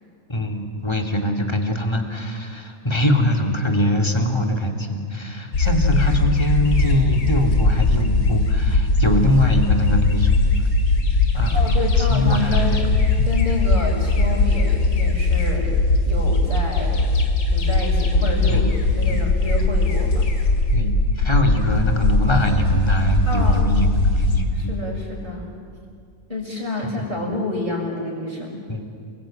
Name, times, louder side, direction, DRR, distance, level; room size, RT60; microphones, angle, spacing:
voice 1, 0.3-10.3 10.6-10.7 11.3-12.9 13.2-13.3 18.5-18.7 19.1-19.3 20.7-24.8 26.8-27.0 28.7-28.8, equal, 15° left, 3 dB, 2.5 m, -23 dB
sound 1, 5.5-24.4, left 3 dB, 75° left, 3.0 m, -19 dB
voice 2, 11.5-12.9 13.3-15.7 16.0-17.1 17.5-18.6 19.0-20.3 23.3-23.7 24.5-25.5 26.3-28.6, left 2 dB, 25° right, -2 dB, 7.1 m, -28 dB
30.0 x 21.5 x 9.0 m, 2.3 s
omnidirectional pair, 2.0 m